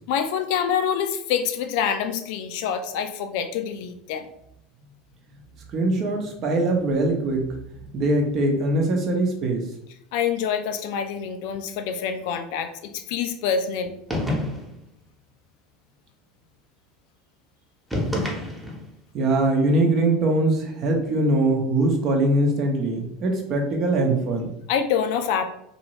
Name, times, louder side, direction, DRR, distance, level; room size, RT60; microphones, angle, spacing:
voice 1, 0.1-4.3 10.1-13.9 24.7-25.4, left 7 dB, 60° left, 8 dB, 0.3 m, -26 dB
voice 2, 5.7-7.6 7.9-9.6 19.1-24.5, right 2 dB, 45° right, 2 dB, 0.8 m, -22 dB
sound 1, 14.1-14.8 17.9-18.9, left 1 dB, 5° right, 1.0 m, -27 dB
2.7 x 2.6 x 3.0 m, 0.78 s
hypercardioid pair, 75°, 0 cm